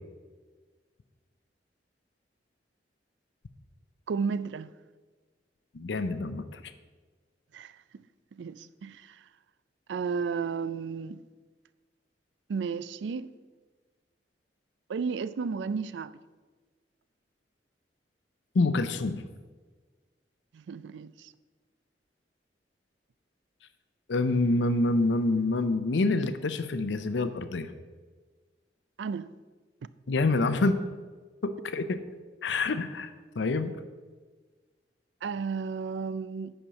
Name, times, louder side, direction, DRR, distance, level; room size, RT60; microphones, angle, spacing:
voice 1, 4.1-4.7 7.5-7.8 8.3-9.2 9.9-11.2 12.5-13.3 14.9-16.2 20.5-21.3 29.0-29.3 35.2-36.5, right 5 dB, 90° right, 0.4 m, -33 dB
voice 2, 5.7-6.6 18.5-19.2 24.1-27.7 30.1-30.8 31.4-32.0 32.4-33.1 33.4-33.8, left 2 dB, 90° left, 0.5 m, -27 dB
10.0 x 4.4 x 6.3 m
head